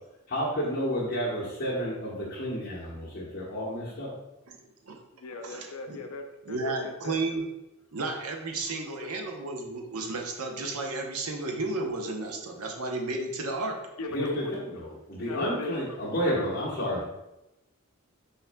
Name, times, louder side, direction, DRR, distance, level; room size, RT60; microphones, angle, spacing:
voice 1, 0.3-4.1 14.1-17.0, equal, 50° left, -8 dB, 1.0 m, -31 dB
voice 2, 4.5-5.0 5.4-6.0 6.5-7.4 7.9-13.8, right 3 dB, 80° right, 2 dB, 0.8 m, -33 dB
voice 3, 5.2-7.2 8.7-9.1 14.0-14.5 15.3-16.0 16.4-16.5 16.9-17.0, left 2 dB, 85° left, 4 dB, 0.6 m, -38 dB
5.7 x 4.1 x 2.2 m, 0.95 s
head